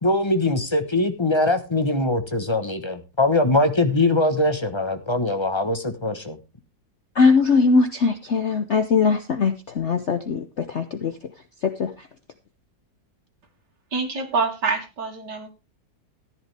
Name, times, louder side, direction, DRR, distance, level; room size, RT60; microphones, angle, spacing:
voice 1, 0.0-6.4, left 2 dB, 20° left, 8 dB, 0.9 m, -22 dB
voice 2, 7.2-11.1 11.6-11.9, left 4 dB, 50° left, 8 dB, 0.9 m, -20 dB
voice 3, 13.9-15.5, right 4 dB, 65° right, 2 dB, 3.1 m, -26 dB
14.0 x 10.5 x 3.4 m, 0.28 s
omnidirectional pair, 2.0 m